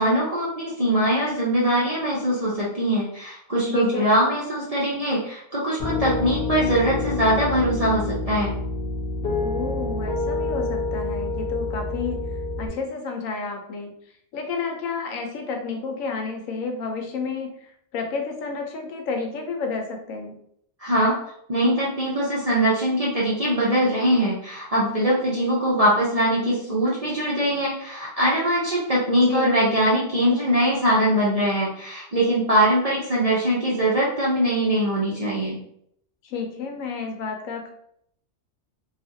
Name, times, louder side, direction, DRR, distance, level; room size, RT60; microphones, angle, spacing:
voice 1, 0.0-8.5 20.8-21.1 21.5-35.6, right 1 dB, 45° right, -6 dB, 0.5 m, -22 dB
voice 2, 3.7-4.1 9.4-13.9 14.3-20.4 29.3-29.5 36.2-37.7, left 4 dB, 90° left, 4 dB, 1.0 m, -30 dB
Piano, 5.8-12.7, left 3 dB, 55° left, 0.8 m, -27 dB
2.7 x 2.4 x 2.6 m, 0.70 s
omnidirectional pair, 1.3 m